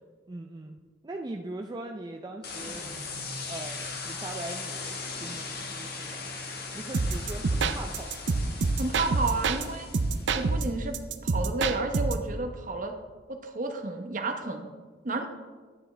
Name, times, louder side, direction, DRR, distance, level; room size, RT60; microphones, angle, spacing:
voice 1, 0.3-2.9 3.5-6.3 6.7-8.4, right 2 dB, 20° right, 2 dB, 0.4 m, -41 dB
sound 1, 2.4-10.6, left 3 dB, 55° left, 1.4 m, -39 dB
sound 2, 6.9-9.6 9.9-12.3, right 3 dB, 90° right, 0.6 m, -27 dB
voice 2, 8.8-9.9 10.3-10.9 11.2-12.9 13.3-14.7 15.0-15.3, right 3 dB, 45° right, 5 dB, 0.9 m, -31 dB
10.5 x 9.4 x 3.3 m, 1.5 s
head